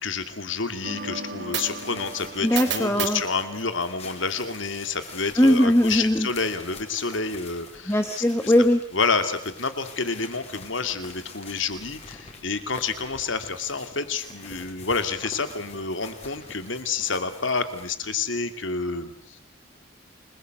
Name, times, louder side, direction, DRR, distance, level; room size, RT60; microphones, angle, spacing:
voice 1, 0.0-8.5 8.9-19.4, left 4 dB, 75° left, 9 dB, 2.5 m, -29 dB
sound 1, 0.8-4.4, right 6 dB, 60° right, 3.8 m, -34 dB
sound 2, 1.6-18.0, left 4 dB, 35° left, 4.8 m, -45 dB
voice 2, 2.4-3.2 5.4-6.3 7.9-8.8, left 1 dB, 15° left, 7 dB, 1.3 m, -20 dB
29.0 x 21.5 x 8.0 m, 0.65 s
head